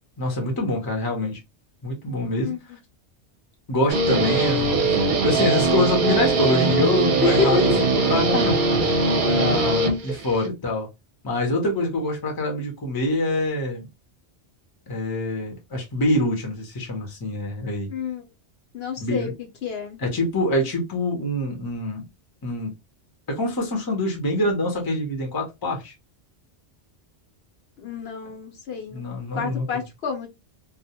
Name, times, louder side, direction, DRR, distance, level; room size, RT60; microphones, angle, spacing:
voice 1, 0.2-1.4 1.8-2.5 3.7-5.0 5.2-7.7 8.1-10.9 11.2-13.9 14.9-17.9 19.0-19.3 20.0-22.0 22.4-22.7 23.3-25.9 28.9-29.6, left 1 dB, 25° left, 0.6 m, -25 dB
Guitar, 3.9-10.5, right 3 dB, 55° right, 0.7 m, -21 dB
voice 2, 7.2-7.8 17.9-18.2 18.7-19.3 19.6-20.0 27.8-29.0 29.3-30.3, left 6 dB, 65° left, 0.9 m, -27 dB
2.2 x 2.1 x 2.8 m
omnidirectional pair, 1.2 m